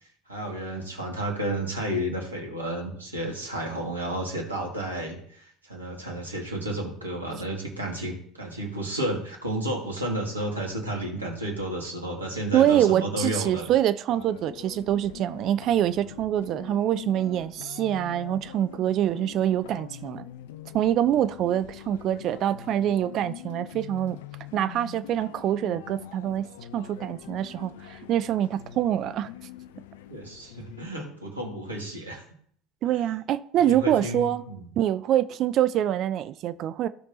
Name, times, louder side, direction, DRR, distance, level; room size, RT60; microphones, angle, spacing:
voice 1, 0.3-13.7 21.1-21.2 30.1-32.2 33.6-34.6, right 1 dB, 85° right, 2.0 m, -32 dB
voice 2, 12.5-20.2 20.7-24.2 24.5-26.5 26.7-29.3 32.8-34.4 34.8-36.9, right 11 dB, 50° right, 0.4 m, -25 dB
sound 1, 14.1-30.9, left 11 dB, 70° left, 0.5 m, -44 dB
15.5 x 5.2 x 2.8 m
figure-of-eight pair, 70°, 0 cm